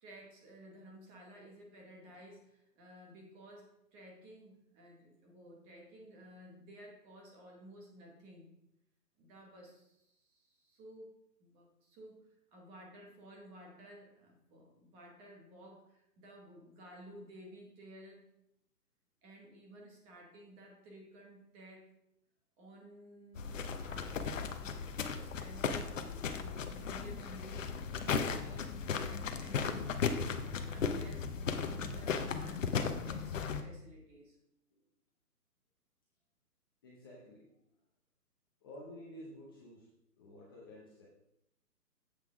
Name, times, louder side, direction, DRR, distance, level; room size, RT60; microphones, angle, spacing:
voice 1, 0.0-8.5 9.2-11.1 11.4-18.2 19.2-21.9 22.6-27.7 28.0-34.4, right 1 dB, 10° right, -1 dB, 1.0 m, -54 dB
sound 1, 23.4-33.6, left 6 dB, 50° left, 0.9 m, -36 dB
voice 2, 36.8-37.5 38.6-39.9 40.2-41.1, left 1 dB, 15° left, -5 dB, 0.7 m, -51 dB
8.1 x 5.9 x 4.9 m, 0.82 s
hypercardioid pair, 150°, 49 cm